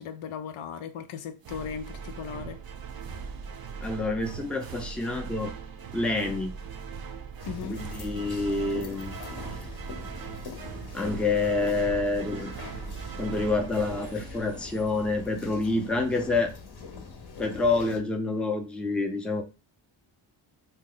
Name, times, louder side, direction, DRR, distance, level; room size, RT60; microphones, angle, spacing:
voice 1, 0.0-2.6 7.5-7.8, left 7 dB, 90° left, 0.6 m, -37 dB
sound 1, 1.4-15.1, right 6 dB, 50° right, 0.5 m, -40 dB
voice 2, 3.8-5.5 5.9-6.5 7.7-9.1 10.9-12.5 13.2-16.5 17.4-19.4, left 3 dB, ahead, 0.4 m, -27 dB
sound 2, 7.4-18.0, left 4 dB, 50° left, 0.8 m, -42 dB
2.8 x 2.1 x 3.7 m
cardioid pair, 90°, 48 cm